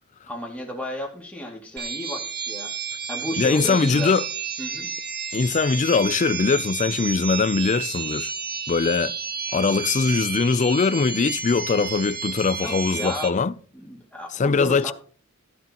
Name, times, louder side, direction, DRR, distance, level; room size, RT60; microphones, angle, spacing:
voice 1, 0.3-2.7 3.1-4.1 4.6-4.9 12.6-13.3 13.7-14.9, left 1 dB, 5° left, 2.3 m, -33 dB
sound 1, 1.8-13.3, right 6 dB, 50° right, 1.4 m, -31 dB
voice 2, 3.4-4.3 5.3-8.3 8.7-9.1 9.5-13.5 14.3-14.9, left 4 dB, 35° left, 0.4 m, -21 dB
14.5 x 9.3 x 2.9 m
head